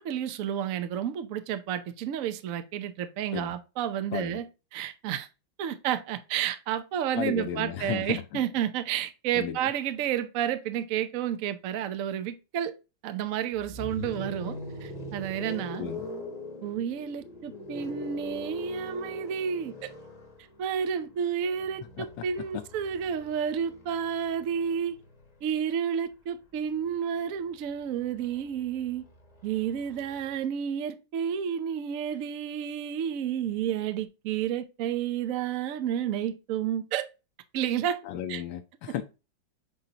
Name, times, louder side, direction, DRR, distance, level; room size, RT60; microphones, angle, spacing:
voice 1, 0.0-4.5 4.7-5.3 5.6-12.7 13.0-14.6 14.8-15.8 16.6-19.7 20.6-25.0 25.4-29.0 29.4-37.1 37.5-38.0 38.3-38.4, right 9 dB, 75° right, 0.7 m, -31 dB
voice 2, 7.1-8.4 9.3-9.6 15.8-16.1 22.0-22.2 22.5-22.6 38.0-39.0, left 10 dB, 80° left, 1.4 m, -34 dB
sound 1, 13.5-25.5 26.8-30.4, left 2 dB, 30° left, 0.8 m, -43 dB
7.8 x 4.3 x 2.8 m
omnidirectional pair, 2.2 m